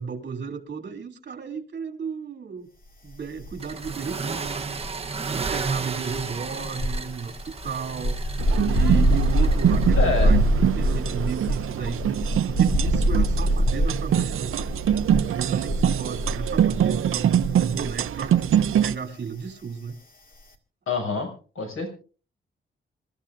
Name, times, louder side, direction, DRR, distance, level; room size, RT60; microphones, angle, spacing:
voice 1, 0.0-2.7 3.0-4.8 5.3-7.4 7.6-8.1 8.6-14.6 15.2-18.4 18.8-20.0, right 6 dB, 55° right, 3 dB, 2.7 m, -33 dB
sound 1, 3.4-4.2 4.4-18.0 18.2-18.5, equal, 45° left, 1.9 m, -24 dB
sound 2, 3.6-9.9, right 5 dB, 30° right, 1.0 m, -34 dB
sound 3, 8.4-18.9, right 10 dB, 85° right, 0.6 m, -24 dB
voice 2, 10.0-10.4 20.9-21.3 21.5-21.9, left 4 dB, 85° left, 4 dB, 6.2 m, -26 dB
27.5 x 14.0 x 2.5 m, 0.39 s
wide cardioid pair, 160°, 21 cm